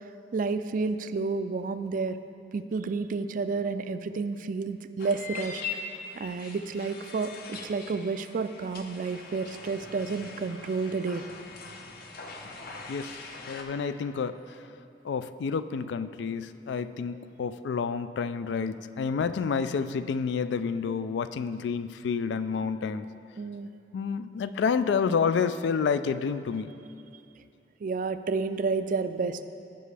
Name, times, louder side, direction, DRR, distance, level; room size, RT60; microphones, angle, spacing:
voice 1, 0.3-2.2 2.5-5.6 6.2-11.2 23.4-23.7 27.8-29.4, right 4 dB, 50° right, 11 dB, 0.3 m, -30 dB
sound 1, 5.0-13.6, left 4 dB, 55° left, 0.8 m, -42 dB
voice 2, 12.9-13.2 13.5-14.4 15.0-23.1 23.9-26.7, left 6 dB, 75° left, 12 dB, 0.3 m, -29 dB
16.0 x 5.5 x 3.3 m, 2.6 s
head